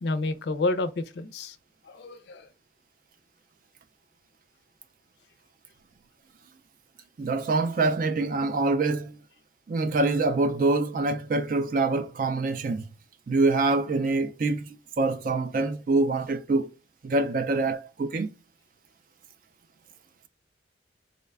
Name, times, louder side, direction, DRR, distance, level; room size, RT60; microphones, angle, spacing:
voice 1, 0.0-1.6 1.8-2.5, left 2 dB, 60° left, 0.4 m, -29 dB
voice 2, 7.2-9.2 9.7-12.8 13.3-16.7 17.0-18.3, right 3 dB, 45° right, 0.3 m, -25 dB
4.0 x 2.1 x 3.4 m
head